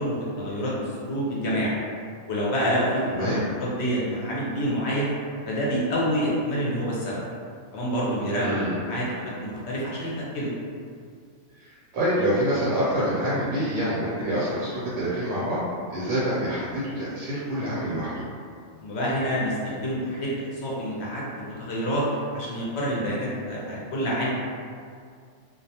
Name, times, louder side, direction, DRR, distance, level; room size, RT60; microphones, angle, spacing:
voice 1, 0.0-1.7 2.3-3.3 3.6-5.1 5.4-7.2 7.7-10.5 18.8-24.3, equal, 65° left, -5 dB, 0.8 m, -27 dB
voice 2, 3.1-3.4 8.4-8.8 11.6-15.6 15.9-18.2, equal, 70° right, -9 dB, 0.9 m, -26 dB
2.3 x 2.0 x 2.7 m, 2.2 s
omnidirectional pair, 1.4 m